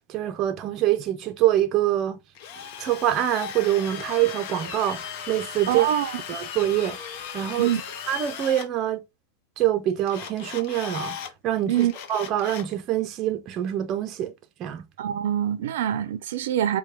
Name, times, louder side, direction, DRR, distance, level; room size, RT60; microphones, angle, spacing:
voice 1, 0.1-2.2 2.8-5.0 5.3-5.9 6.3-7.0 7.3-7.7 8.1-9.0 9.6-11.2 11.4-14.3 14.6-14.9, right 12 dB, 30° right, 0.5 m, -25 dB
Drill, 2.3-8.7 10.1-11.3 11.7-12.7, left 8 dB, 50° left, 0.7 m, -37 dB
voice 2, 5.7-6.2 7.6-7.8 11.7-11.9 15.0-16.8, right 11 dB, 75° right, 0.5 m, -24 dB
4.5 x 2.2 x 3.1 m
supercardioid pair, 155°, 0 cm